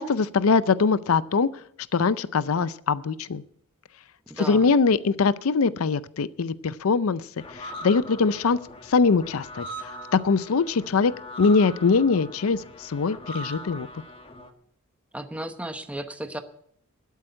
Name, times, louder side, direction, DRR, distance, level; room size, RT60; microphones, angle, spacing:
voice 1, 0.0-1.5 1.9-3.4 4.4-7.2 7.5-8.6 8.9-9.7 10.1-11.1 11.4-13.9, left 4 dB, 70° left, 16 dB, 0.5 m, -22 dB
voice 2, 4.3-4.7 15.1-16.4, right 1 dB, 5° right, 7 dB, 0.9 m, -34 dB
sound 1, 7.4-14.5, equal, 25° left, 1.2 m, -41 dB
12.0 x 8.2 x 8.9 m, 0.67 s
head